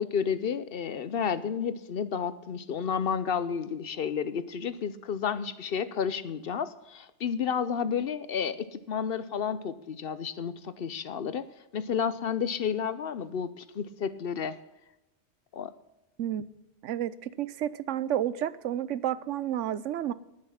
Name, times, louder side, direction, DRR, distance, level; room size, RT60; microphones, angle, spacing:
voice 1, 0.0-11.4 11.7-14.6 15.5-15.7, left 7 dB, 55° left, 14 dB, 0.8 m, -31 dB
voice 2, 16.8-20.1, right 11 dB, 90° right, 16 dB, 1.0 m, -31 dB
19.0 x 6.6 x 5.6 m, 0.98 s
omnidirectional pair, 1.2 m